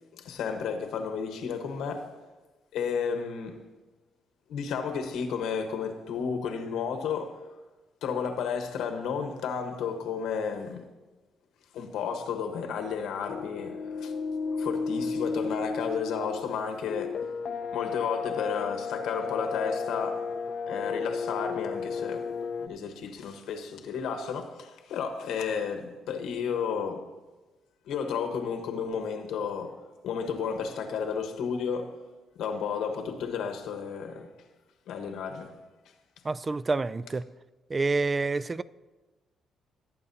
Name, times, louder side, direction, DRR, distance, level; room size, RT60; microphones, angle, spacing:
voice 1, 0.1-2.1 2.7-3.6 4.5-7.4 8.0-10.9 11.7-14.1 14.6-17.3 17.7-20.3 20.7-22.3 22.6-27.0 27.9-29.8 30.0-32.0 32.3-34.3 34.9-35.5, left 6 dB, 85° left, 1.2 m, -32 dB
sound 1, 13.3-22.7, left 5 dB, 60° left, 0.5 m, -33 dB
voice 2, 36.2-37.2 37.7-38.6, right 3 dB, 30° right, 0.3 m, -28 dB
18.0 x 8.6 x 2.8 m
cardioid pair, 90°, 0 cm